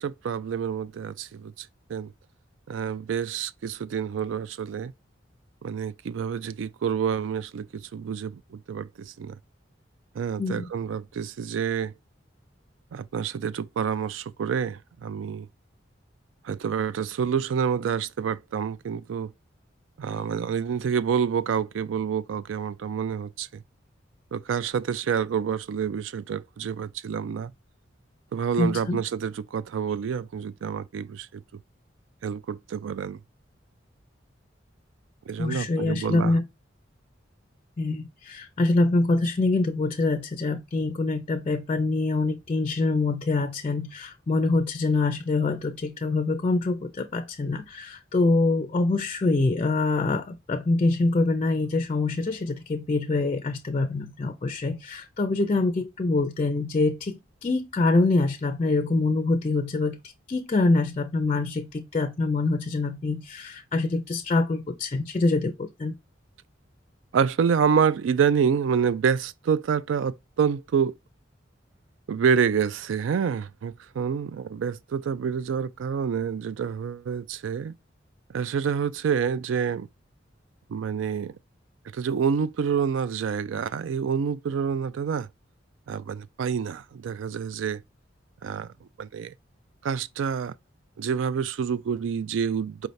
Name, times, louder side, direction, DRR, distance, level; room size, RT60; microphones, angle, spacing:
voice 1, 0.0-1.5 1.9-2.1 2.7-4.9 5.6-9.4 10.2-11.9 12.9-15.5 16.4-19.3 20.0-23.5 24.3-27.5 28.3-31.4 32.2-33.2 35.3-36.3 67.1-71.0 72.1-77.7 78.3-79.9 80.7-81.3 81.9-85.3 85.9-87.8 88.4-88.7 89.0-89.3 89.8-90.5 91.0-92.9, right 7 dB, 90° right, 0.4 m, -27 dB
voice 2, 10.4-10.7 28.6-29.0 35.4-36.4 37.8-60.0 60.3-65.9, left 3 dB, 30° left, 0.4 m, -25 dB
4.7 x 3.2 x 2.6 m
head